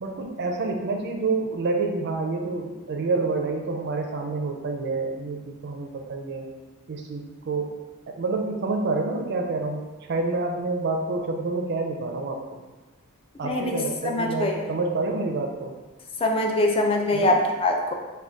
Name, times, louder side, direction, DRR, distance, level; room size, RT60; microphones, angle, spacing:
voice 1, 0.0-6.5 6.9-7.7 8.1-9.8 10.1-12.6 13.4-15.7 17.1-17.3, right 3 dB, 50° right, 3 dB, 0.4 m, -28 dB
voice 2, 13.4-13.8 14.1-14.6 16.2-17.9, left 1 dB, 25° left, 2 dB, 0.4 m, -23 dB
3.7 x 2.2 x 3.4 m, 1.3 s
head